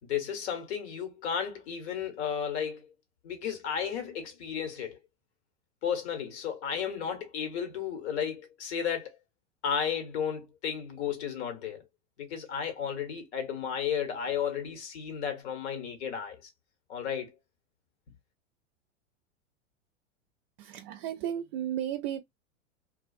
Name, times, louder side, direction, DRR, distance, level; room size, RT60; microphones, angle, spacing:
voice 1, 0.0-2.9 3.2-5.0 5.8-9.2 9.6-11.8 12.2-16.5 16.9-17.3, left 8 dB, 65° left, 1.3 m, -33 dB
voice 2, 20.6-22.2, right 10 dB, 50° right, 0.5 m, -34 dB
2.5 x 2.3 x 2.3 m
hypercardioid pair, 105°, 37 cm